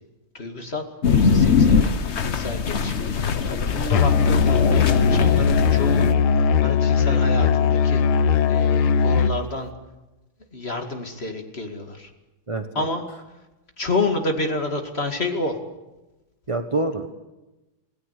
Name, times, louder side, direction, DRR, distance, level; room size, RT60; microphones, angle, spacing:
voice 1, 0.3-0.8 1.1-1.9 2.2-6.0 6.6-9.7 10.5-12.1 12.7-13.0 13.8-15.6, left 2 dB, 30° left, 5 dB, 2.4 m, -29 dB
sound 1, 1.0-6.1, left 5 dB, 45° left, 0.9 m, -21 dB
Musical instrument, 3.9-9.4, left 6 dB, 80° left, 1.9 m, -19 dB
voice 2, 12.5-12.9 16.5-17.1, right 2 dB, 25° right, 7 dB, 0.7 m, -26 dB
27.0 x 17.5 x 8.3 m, 1.1 s
omnidirectional pair, 2.4 m